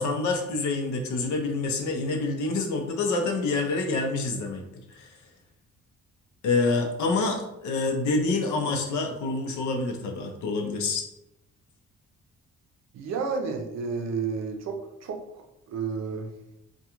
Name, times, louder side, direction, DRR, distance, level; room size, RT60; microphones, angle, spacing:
voice 1, 0.0-4.6 4.9-5.2 6.4-11.0, left 3 dB, 75° left, 3 dB, 0.6 m, -27 dB
voice 2, 12.9-15.2 15.7-16.3, right 5 dB, 60° right, 4 dB, 0.5 m, -31 dB
2.3 x 2.2 x 2.8 m, 0.86 s
cardioid pair, 90°, 30 cm